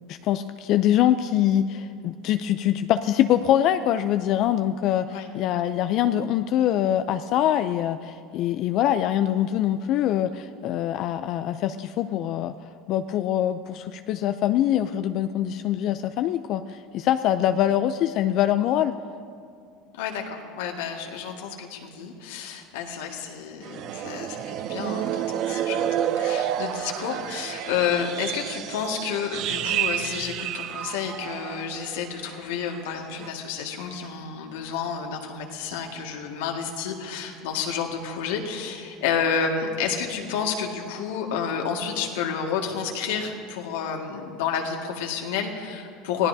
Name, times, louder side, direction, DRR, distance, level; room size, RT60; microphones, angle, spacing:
voice 1, 0.1-12.5 12.9-18.9, left 11 dB, 55° left, 9 dB, 0.4 m, -24 dB
voice 2, 19.9-46.3, left 7 dB, 80° left, 2 dB, 1.8 m, -30 dB
sound 1, 23.6-32.2 32.5-32.8 33.2-33.3, right 10 dB, 55° right, 0.6 m, -30 dB
24.0 x 16.5 x 2.7 m, 2.4 s
supercardioid pair, 110°, 0 cm